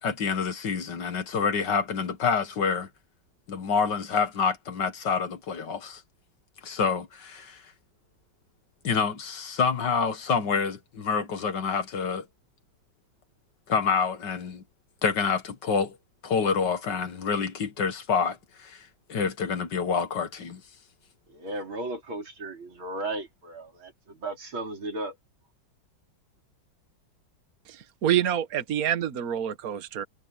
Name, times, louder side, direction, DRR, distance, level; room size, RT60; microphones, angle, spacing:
voice 1, 0.0-2.9 3.5-6.0 6.6-7.6 8.8-12.3 13.7-14.6 15.0-16.0 16.2-20.6, left 5 dB, 60° left, 2.1 m, -27 dB
voice 2, 21.3-25.2, right 2 dB, 85° right, 4.9 m, -35 dB
voice 3, 28.0-30.1, right 10 dB, 50° right, 1.6 m, -26 dB
omnidirectional pair, 2.2 m